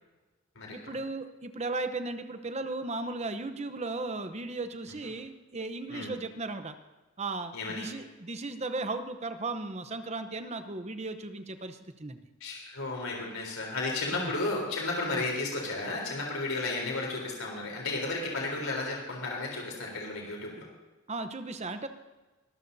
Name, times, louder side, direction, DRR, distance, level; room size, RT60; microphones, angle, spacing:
voice 1, 0.7-6.8 7.2-12.2 14.1-14.3 15.1-15.2 21.1-21.9, right 3 dB, 30° right, 9 dB, 0.8 m, -36 dB
voice 2, 7.5-7.9 12.4-20.7, left 2 dB, 75° left, -1 dB, 3.7 m, -33 dB
23.5 x 13.5 x 2.7 m, 1.2 s
head